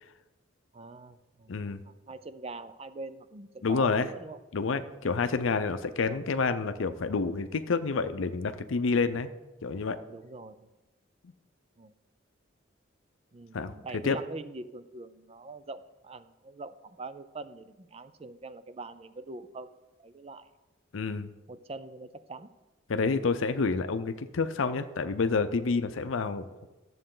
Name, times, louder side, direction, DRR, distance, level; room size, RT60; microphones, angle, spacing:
voice 1, 0.7-4.4 5.0-5.3 10.1-10.7 11.8-11.9 13.3-19.7 20.0-20.5 21.5-22.5, right 3 dB, 30° right, 13 dB, 0.5 m, -43 dB
voice 2, 1.5-1.8 3.6-4.1 4.5-9.3 9.6-10.0 13.5-13.7 14.0-14.2 20.9-21.3 22.9-26.4, left 4 dB, 80° left, 10 dB, 0.5 m, -28 dB
13.0 x 7.6 x 3.8 m, 1.1 s
head